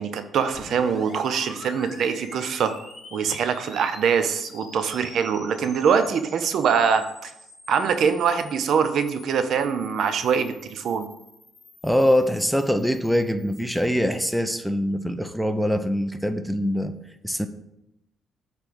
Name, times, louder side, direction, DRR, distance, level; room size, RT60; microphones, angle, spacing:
voice 1, 0.0-2.7 3.1-7.3 7.7-11.1, right 6 dB, 70° right, 10 dB, 0.7 m, -23 dB
sound 1, 0.5-14.4, left 2 dB, 40° left, 3.2 m, -46 dB
voice 2, 11.8-16.9 17.2-17.5, equal, ahead, 9 dB, 0.6 m, -23 dB
8.4 x 3.4 x 6.1 m, 0.84 s
cardioid pair, 90°, 0 cm